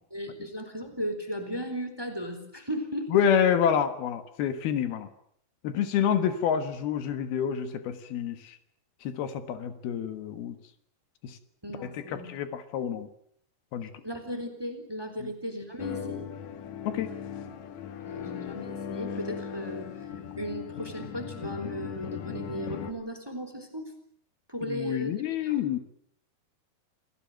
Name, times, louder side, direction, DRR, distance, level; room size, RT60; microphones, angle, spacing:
voice 1, 0.1-3.1 11.6-12.3 14.0-16.3 18.0-20.0 20.4-23.9 24.5-25.2 25.4-25.6, equal, 5° right, 8 dB, 3.5 m, -36 dB
voice 2, 3.1-5.1 5.6-8.6 9.1-10.6 11.2-11.3 11.8-13.1 13.7-13.9 15.2-15.3 16.9-17.1 24.7-25.8, left 8 dB, 75° left, 10 dB, 3.3 m, -28 dB
sound 1, 15.8-22.9, left 8 dB, 60° left, 2.2 m, -38 dB
28.0 x 18.0 x 7.8 m, 0.68 s
omnidirectional pair, 4.5 m